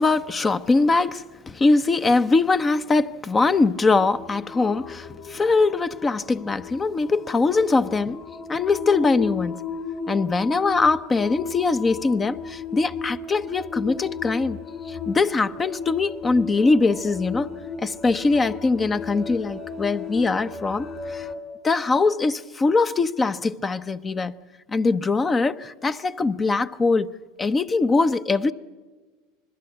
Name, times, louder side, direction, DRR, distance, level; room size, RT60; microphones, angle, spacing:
voice 1, 0.0-8.2 8.5-9.6 10.1-14.6 14.9-17.5 17.8-21.3 21.6-24.3 24.7-27.1 27.4-28.5, left 3 dB, 20° left, 0.8 m, -22 dB
sound 1, 3.3-21.3, left 5 dB, 40° left, 4.5 m, -35 dB
26.5 x 21.0 x 7.9 m
hypercardioid pair, 100°, 0 cm